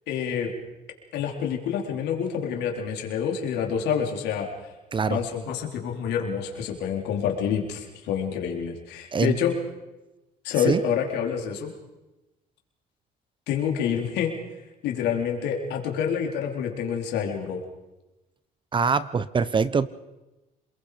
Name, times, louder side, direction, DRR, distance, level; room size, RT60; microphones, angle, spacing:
voice 1, 0.1-0.5 1.1-4.5 5.1-9.5 10.4-11.7 13.5-14.3 14.8-17.6, left 8 dB, 85° left, 2 dB, 4.1 m, -27 dB
voice 2, 4.9-5.2 9.1-9.4 10.6-10.8 18.7-19.9, right 5 dB, 30° right, 16 dB, 0.9 m, -23 dB
27.5 x 22.0 x 5.2 m, 1.0 s
cardioid pair, 110°, 17 cm